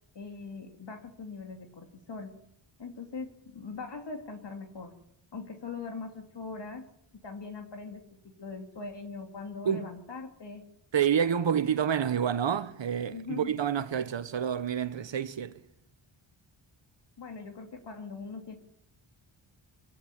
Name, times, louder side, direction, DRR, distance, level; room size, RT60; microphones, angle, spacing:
voice 1, 0.1-2.3 2.8-5.0 5.3-6.9 7.2-8.0 8.4-10.6 13.1-13.5 17.2-18.6, left 4 dB, 55° left, 2.9 m, -41 dB
voice 2, 10.9-15.6, right 8 dB, 60° right, 1.3 m, -28 dB
23.5 x 16.5 x 9.7 m
wide cardioid pair, 100°, 49 cm